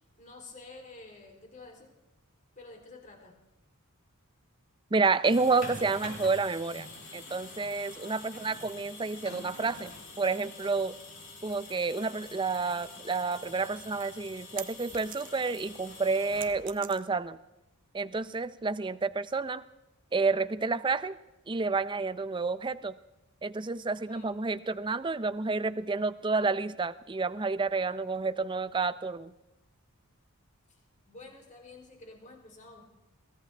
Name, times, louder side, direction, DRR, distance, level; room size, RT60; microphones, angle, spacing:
voice 1, 0.2-1.9 2.6-3.4 7.9-8.2 24.0-24.3 30.7-30.8 31.1-32.8, left 3 dB, 35° left, 2 dB, 3.2 m, -50 dB
voice 2, 4.9-6.9 7.1-11.0 11.4-17.4 17.9-19.6 20.1-21.2 21.5-23.0 23.4-29.3, right 4 dB, 20° right, 14 dB, 0.5 m, -30 dB
sound 1, 5.0-17.0, left 2 dB, 60° left, 5.8 m, -46 dB
sound 2, 14.6-15.6 15.9-17.4, right 10 dB, 40° right, 0.9 m, -45 dB
22.5 x 16.5 x 3.4 m, 0.98 s
head